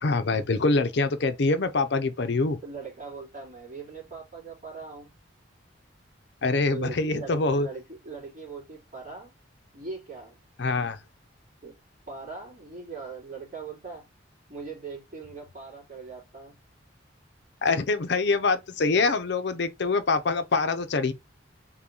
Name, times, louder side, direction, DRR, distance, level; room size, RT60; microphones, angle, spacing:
voice 1, 0.0-2.6 6.4-7.7 10.6-11.0 17.6-21.1, left 3 dB, 60° left, 0.6 m, -25 dB
voice 2, 2.6-5.1 6.7-9.3 9.7-10.4 11.6-11.7 12.1-14.1 14.5-16.6, right 4 dB, 40° right, 3.2 m, -40 dB
4.1 x 3.8 x 2.8 m
head